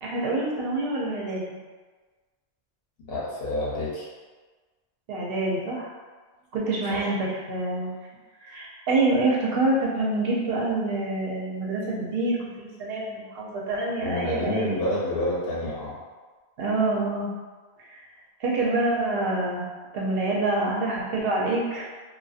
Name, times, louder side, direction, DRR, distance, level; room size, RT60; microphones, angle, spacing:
voice 1, 0.0-1.4 5.1-5.9 6.5-7.9 8.4-14.8 16.6-17.3 17.8-18.0 18.4-19.7 19.9-21.8, right 2 dB, 75° right, -4 dB, 0.8 m, -26 dB
voice 2, 3.1-4.1 6.9-7.0 14.0-16.0, left 1 dB, 75° left, -6 dB, 1.0 m, -28 dB
2.6 x 2.3 x 2.4 m, 1.4 s
omnidirectional pair, 1.0 m